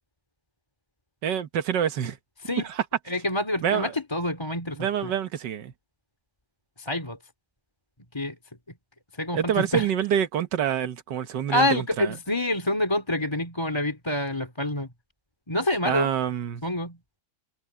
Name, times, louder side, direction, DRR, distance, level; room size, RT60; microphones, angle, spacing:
voice 1, 1.2-2.2 2.6-2.8 3.6-3.9 4.8-5.7 9.3-12.1 15.9-16.6, right 9 dB, 85° right, 1.8 m, -26 dB
voice 2, 3.1-5.1 6.8-7.2 8.1-8.4 9.2-9.9 11.5-14.9 15.5-16.1 16.6-17.0, left 1 dB, 15° left, 2.8 m, -27 dB
omnidirectional pair, 1.8 m